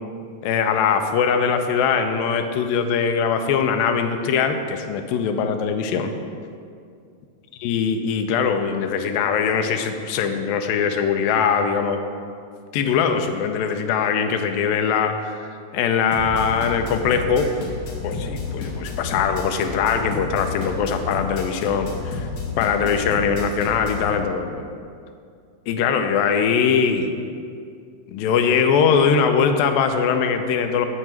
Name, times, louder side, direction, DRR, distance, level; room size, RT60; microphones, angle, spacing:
voice 1, 0.4-6.1 7.6-12.0 12.7-15.4 15.7-17.5 18.0-22.3 22.6-24.6 25.7-27.1 28.1-30.9, left 6 dB, 80° left, 6 dB, 2.3 m, -21 dB
sound 1, 16.1-24.1, left 4 dB, 65° left, 2.5 m, -31 dB
9.6 x 4.5 x 7.5 m, 2.3 s
omnidirectional pair, 4.2 m